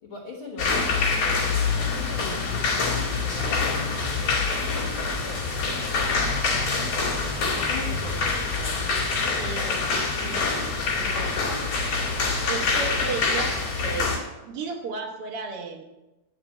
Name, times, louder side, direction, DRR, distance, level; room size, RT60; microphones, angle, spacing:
voice 1, 0.0-5.4 5.7-6.9 7.5-8.8, left 3 dB, 70° left, -1 dB, 1.2 m, -41 dB
sound 1, 0.6-14.2, left 4 dB, 45° left, 3.8 m, -25 dB
voice 2, 9.2-9.9 10.2-11.4 12.4-14.2 14.4-15.8, right 5 dB, 80° right, 1 dB, 1.2 m, -34 dB
11.5 x 6.1 x 7.9 m, 1.0 s
omnidirectional pair, 4.7 m